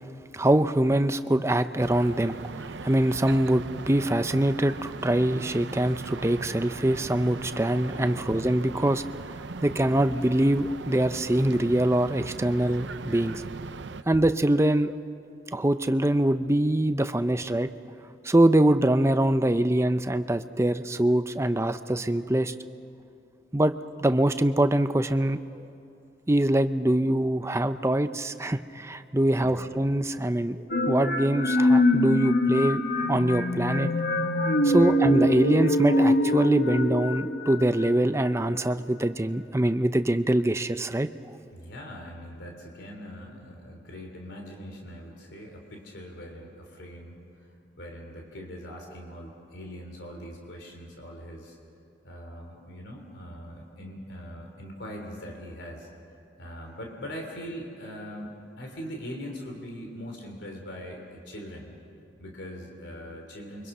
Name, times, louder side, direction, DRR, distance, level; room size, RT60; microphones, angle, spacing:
voice 1, 0.3-2.4 2.8-9.0 9.6-13.4 14.1-14.9 15.5-17.7 18.2-22.5 23.5-23.7 24.0-25.7 26.3-32.8 33.1-33.9 34.6-41.1, right 1 dB, 15° right, 10 dB, 0.6 m, -24 dB
sound 1, 1.8-14.0, right 4 dB, 75° right, 0.7 m, -39 dB
sound 2, 30.7-38.4, left 1 dB, 55° left, 1.1 m, -24 dB
voice 2, 34.7-35.0 41.5-47.5 47.8-51.6 52.0-55.9 56.4-61.7 62.2-63.7, equal, 75° left, 1 dB, 3.4 m, -41 dB
29.5 x 24.0 x 5.6 m, 2.7 s
head